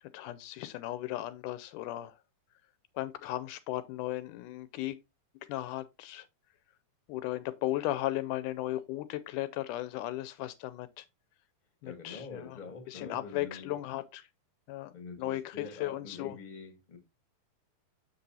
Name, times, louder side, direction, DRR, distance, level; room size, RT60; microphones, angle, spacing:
voice 1, 0.0-2.2 3.0-5.0 5.4-6.3 7.1-11.1 11.8-12.6 12.9-14.3 14.7-16.4, left 15 dB, 80° left, 2.0 m, -36 dB
voice 2, 11.8-13.7 14.9-17.0, left 4 dB, 20° left, 1.6 m, -45 dB
7.4 x 6.8 x 2.7 m
omnidirectional pair, 3.7 m